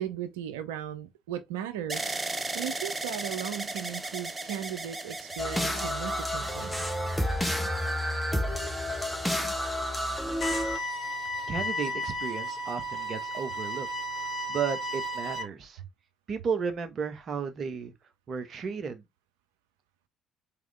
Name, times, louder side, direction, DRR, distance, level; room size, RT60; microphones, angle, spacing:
voice 1, 0.0-2.2 2.5-6.9, right 10 dB, 80° right, 0.6 m, -37 dB
sound 1, 1.9-9.9 10.6-11.3, right 2 dB, 20° right, 0.7 m, -38 dB
sound 2, 5.4-10.8, equal, 5° left, 1.2 m, -30 dB
sound 3, 10.4-15.4, equal, 50° left, 1.8 m, -33 dB
voice 2, 11.5-13.9 14.5-15.8 16.3-17.9 18.3-19.0, right 6 dB, 50° right, 1.1 m, -33 dB
3.7 x 3.4 x 3.4 m
hypercardioid pair, 55°, 0 cm